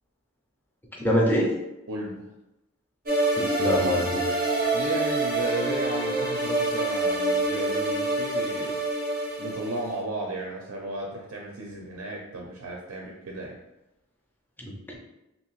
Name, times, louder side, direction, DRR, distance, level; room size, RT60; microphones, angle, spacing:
voice 1, 0.9-1.5 3.4-4.4 14.6-15.0, equal, 10° left, -2 dB, 0.5 m, -25 dB
voice 2, 1.9-2.3 4.7-8.7 9.4-13.6, right 2 dB, 75° right, -1 dB, 0.5 m, -34 dB
sound 1, 3.1-10.0, right 2 dB, 45° right, 0.7 m, -26 dB
2.8 x 2.8 x 3.0 m, 0.93 s
head